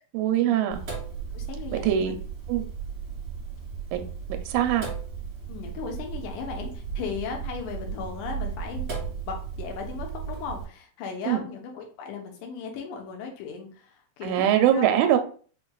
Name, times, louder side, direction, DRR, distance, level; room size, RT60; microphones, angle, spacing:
voice 1, 0.1-0.8 1.7-2.1 2.5-2.6 3.9-4.0 4.5-4.9 11.3-11.4 14.2-15.2, right 10 dB, 80° right, 6 dB, 1.9 m, -22 dB
Sink (filling or washing), 0.7-10.6, right 6 dB, 40° right, 2.4 m, -35 dB
voice 2, 1.3-2.1 5.5-14.8, left 5 dB, 85° left, 2 dB, 2.4 m, -37 dB
5.4 x 3.1 x 2.2 m, 0.42 s
omnidirectional pair, 3.6 m